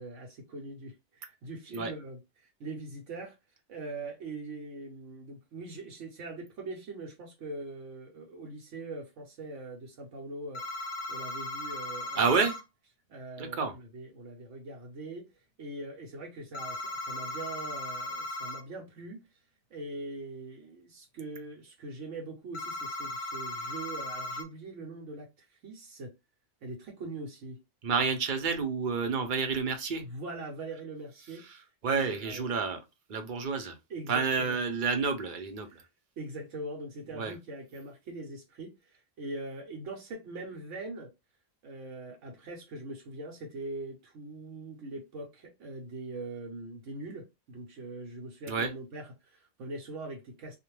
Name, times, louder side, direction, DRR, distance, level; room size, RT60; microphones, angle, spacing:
voice 1, 0.0-3.4 3.7-10.8 11.1-12.4 13.1-15.3 15.6-19.2 19.7-26.1 26.6-27.6 30.0-31.4 31.9-32.5 33.9-34.6 35.7-35.9 36.2-41.1 41.6-50.5, right 2 dB, 80° right, 1.1 m, -42 dB
sound 1, 10.5-12.6 16.5-18.6 22.5-24.4, left 2 dB, 45° left, 0.8 m, -37 dB
voice 2, 12.2-12.6 13.4-13.7 27.8-30.0 31.8-32.8 33.1-33.7 34.1-35.8 37.2-37.3 48.5-48.7, right 5 dB, 50° right, 0.7 m, -29 dB
2.5 x 2.2 x 3.0 m
omnidirectional pair, 1.2 m